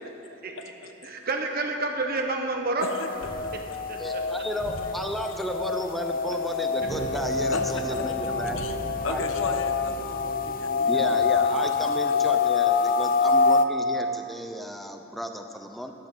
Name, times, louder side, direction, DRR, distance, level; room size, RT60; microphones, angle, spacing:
voice 1, 0.0-0.4 0.8-0.9 2.8-3.1 3.4-3.5 5.3-5.4 7.5-8.1 8.6-8.8 9.0-12.3 13.2-13.3, left 3 dB, 85° left, 6 dB, 0.9 m, -36 dB
voice 2, 1.0-2.9 3.9-4.2, right 3 dB, 50° right, 2 dB, 1.0 m, -29 dB
sound 1, 2.8-13.6, left 5 dB, 45° left, 0.4 m, -26 dB
sound 2, 3.1-10.5, equal, 30° right, 2.3 m, -44 dB
voice 3, 4.0-8.6 9.1-9.2 10.9-15.9, equal, ahead, 4 dB, 0.7 m, -33 dB
sound 3, 6.8-12.3, right 1 dB, 60° left, 1.8 m, -37 dB
12.5 x 10.5 x 5.4 m, 2.8 s
head